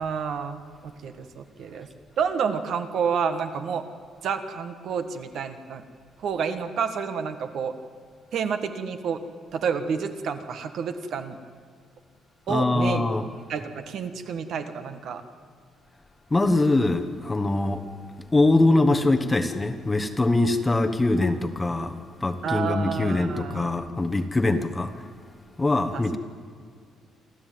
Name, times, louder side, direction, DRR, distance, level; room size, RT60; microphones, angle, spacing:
voice 1, 0.0-1.9 2.2-3.8 4.2-5.8 6.2-7.7 8.3-9.2 9.5-11.4 12.5-13.0 13.5-15.2 22.4-23.7 25.9-26.0, right 6 dB, 60° right, 8 dB, 1.5 m, -29 dB
voice 2, 12.5-13.3 16.3-17.8 18.3-25.0 25.6-26.2, left 2 dB, 15° left, 7 dB, 1.1 m, -23 dB
28.0 x 13.0 x 9.4 m, 2.1 s
cardioid pair, 165°, 0 cm